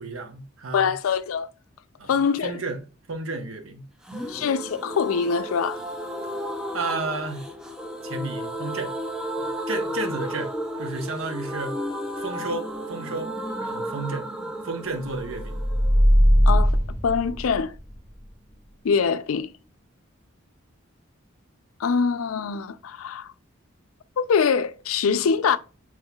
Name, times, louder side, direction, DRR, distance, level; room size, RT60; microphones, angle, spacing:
voice 1, 0.0-0.9 2.0-2.1 2.4-2.8 3.1-3.8 4.1-4.4 6.7-7.5 8.0-8.9 9.4-10.5 10.8-11.8 12.2-14.3 14.6-15.6, right 3 dB, 75° right, 0.8 m, -32 dB
voice 2, 0.7-1.5 2.1-2.5 4.3-5.9 16.5-16.7 17.0-17.7 18.8-19.5 21.8-23.3 24.2-25.6, left 6 dB, 80° left, 0.4 m, -23 dB
sound 1, 4.0-17.7 17.9-18.0 18.3-18.4, equal, 5° right, 0.4 m, -33 dB
sound 2, 15.3-18.0, equal, 30° right, 1.8 m, -19 dB
5.6 x 3.1 x 2.2 m
head